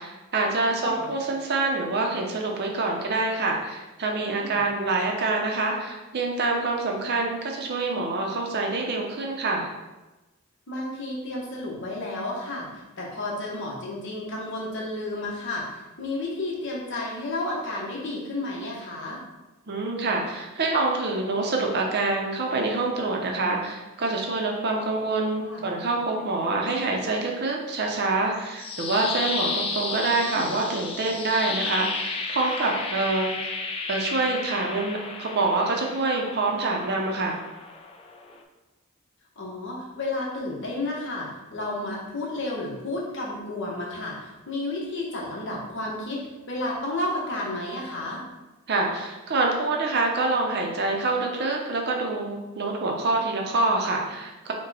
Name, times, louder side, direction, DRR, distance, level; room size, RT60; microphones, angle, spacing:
voice 1, 0.0-9.7 19.7-33.6 33.9-37.4 48.7-54.5, right 3 dB, 50° right, 0 dB, 0.7 m, -26 dB
voice 2, 0.7-1.1 4.3-4.6 10.7-12.7 13.0-19.2 25.4-25.7 30.2-30.6 39.4-48.2, left 2 dB, 60° left, -3 dB, 1.1 m, -32 dB
sound 1, 28.3-38.4, left 4 dB, 25° left, 0.4 m, -33 dB
5.2 x 2.3 x 4.1 m, 1.1 s
head